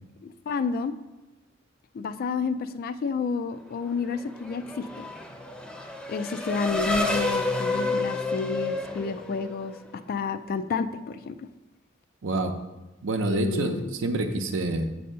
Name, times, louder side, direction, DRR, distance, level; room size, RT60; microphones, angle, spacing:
voice 1, 0.2-1.0 1.9-5.1 6.1-11.5 13.2-13.9, left 5 dB, 50° left, 12 dB, 0.3 m, -30 dB
Race car auto racing / Accelerating revving vroom, 3.9-9.9, left 2 dB, 5° left, 0.6 m, -30 dB
voice 2, 12.2-12.5 13.0-14.9, right 2 dB, 75° right, 6 dB, 0.6 m, -27 dB
7.4 x 2.7 x 5.5 m, 1.0 s
head